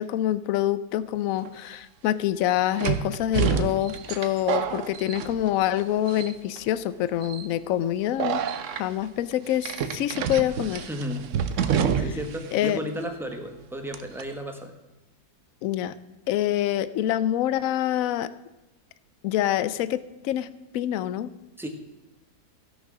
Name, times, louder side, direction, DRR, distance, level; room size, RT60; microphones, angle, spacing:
voice 1, 0.0-8.4 8.7-10.9 12.5-12.8 15.6-15.9 16.3-18.3 19.2-20.5 20.7-21.3, left 12 dB, 70° left, 16 dB, 0.9 m, -26 dB
sound 1, 1.5-1.6 2.8-5.8 6.1-6.6 7.2-7.5 8.2-8.8 9.6-12.4 12.6-12.7 13.9-14.2, right 7 dB, 60° right, 0.9 m, -28 dB
voice 2, 10.9-11.3 11.6-14.7 21.6-21.7, equal, ahead, 4 dB, 1.0 m, -34 dB
14.5 x 6.5 x 6.1 m, 1.0 s
omnidirectional pair, 1.7 m